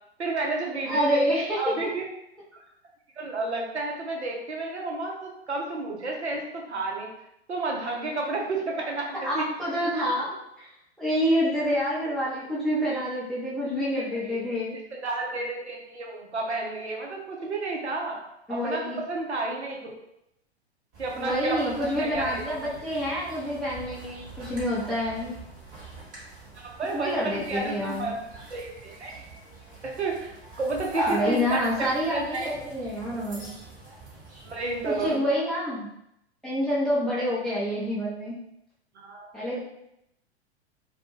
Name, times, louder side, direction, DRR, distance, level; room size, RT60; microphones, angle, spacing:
voice 1, 0.2-2.1 2.5-2.6 3.2-7.1 7.5-9.5 12.4-12.5 12.9-13.0 13.9-14.6 14.9-18.2 18.5-19.8 21.0-22.4 26.5-29.2 29.8-30.3 30.6-32.5 34.4-35.2 38.9-39.3, right 2 dB, 85° right, -1 dB, 0.7 m, -31 dB
voice 2, 0.9-1.6 9.2-10.7 11.0-14.8 18.5-19.0 21.2-25.4 26.9-28.1 31.1-33.5 34.9-35.9 36.4-38.4 39.3-39.6, equal, ahead, -9 dB, 0.6 m, -27 dB
sound 1, 20.9-35.2, right 2 dB, 25° right, 1.0 m, -40 dB
2.3 x 2.1 x 3.0 m, 0.81 s
figure-of-eight pair, 100°, 33 cm